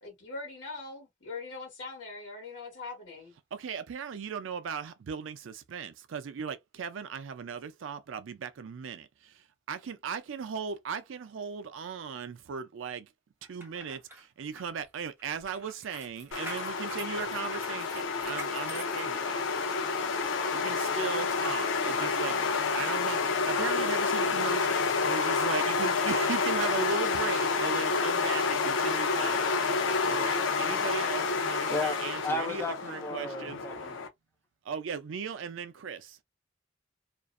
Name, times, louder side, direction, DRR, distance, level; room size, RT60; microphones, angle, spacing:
voice 1, 0.0-3.3, left 3 dB, 65° left, 1.1 m, -42 dB
voice 2, 3.5-13.1 13.5-19.5 20.5-33.6 34.6-36.2, right 6 dB, 90° right, 0.4 m, -38 dB
sound 1, 13.4-19.7 20.2-20.3, right 1 dB, 10° right, 0.8 m, -47 dB
sound 2, 16.3-34.1, left 4 dB, 85° left, 0.5 m, -29 dB
voice 3, 31.7-33.9, left 2 dB, 10° left, 0.4 m, -34 dB
2.5 x 2.0 x 2.4 m
head